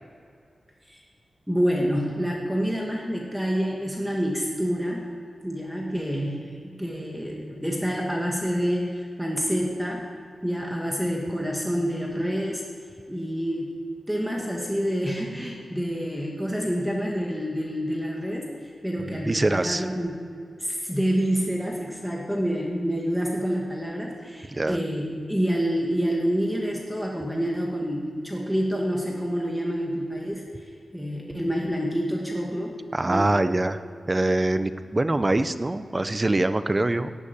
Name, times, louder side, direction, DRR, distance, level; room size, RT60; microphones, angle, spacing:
voice 1, 1.5-5.1 5.4-10.0 10.4-12.6 13.1-13.7 14.1-18.5 18.8-20.2 20.6-30.4 30.9-32.7 33.0-33.3, equal, ahead, -2 dB, 2.1 m, -27 dB
voice 2, 19.1-19.9 24.5-24.8 32.9-33.8 34.1-37.1, right 2 dB, 25° right, 11 dB, 0.6 m, -24 dB
15.5 x 8.2 x 9.7 m, 2.3 s
wide cardioid pair, 110°, 0 cm